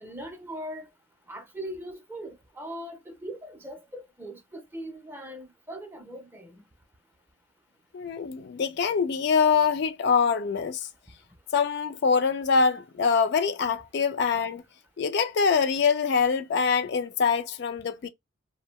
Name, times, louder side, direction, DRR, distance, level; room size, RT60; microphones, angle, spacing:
voice 1, 0.0-0.9 1.3-6.5, right 1 dB, 10° right, 0.5 m, -40 dB
voice 2, 7.9-10.9 11.5-14.6 15.0-18.1, left 5 dB, 55° left, 0.3 m, -24 dB
2.6 x 2.1 x 2.9 m
head